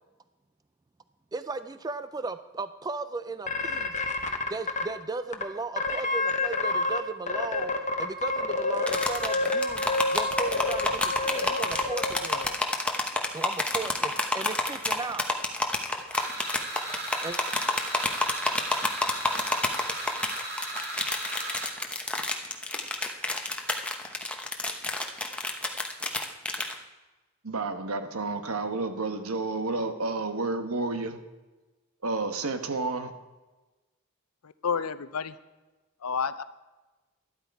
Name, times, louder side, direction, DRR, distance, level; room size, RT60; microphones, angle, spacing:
voice 1, 1.3-3.9 4.5-7.7 8.0-9.8 10.1-12.6 13.3-15.3 17.2-17.4, right 3 dB, 15° right, 12 dB, 0.3 m, -36 dB
sound 1, 3.5-4.8 5.3-5.4 5.8-7.0 7.3-12.5, left 3 dB, 35° left, 1.0 m, -28 dB
sound 2, 8.9-26.7, left 2 dB, 5° left, 1.0 m, -29 dB
sound 3, 16.1-21.7, right 1 dB, 45° right, 2.6 m, -37 dB
voice 2, 27.4-31.2 32.0-33.1, right 3 dB, 70° right, 8 dB, 1.2 m, -30 dB
voice 3, 34.4-35.4 36.0-36.4, left 6 dB, 75° left, 14 dB, 0.6 m, -30 dB
12.0 x 12.0 x 4.7 m, 1.1 s
head